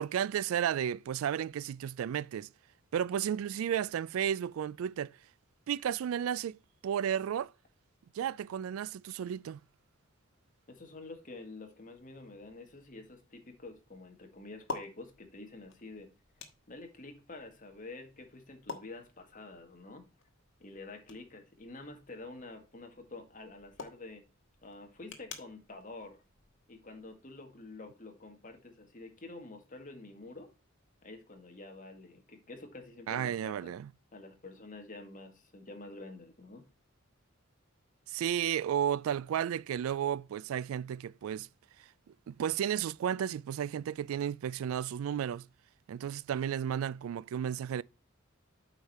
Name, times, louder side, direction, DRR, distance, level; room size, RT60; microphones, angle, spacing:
voice 1, 0.0-2.5 2.9-5.2 5.7-7.5 8.1-9.6 33.1-33.9 38.1-41.5 42.3-45.5 45.9-47.8, right 9 dB, 85° right, 0.3 m, -33 dB
voice 2, 10.7-16.1 16.7-20.0 20.6-24.3 24.6-26.2 26.7-30.5 31.0-33.7 34.1-36.6, left 2 dB, 40° left, 1.8 m, -48 dB
sound 1, 12.0-27.2, left 4 dB, 65° left, 1.5 m, -51 dB
8.1 x 5.1 x 4.2 m
head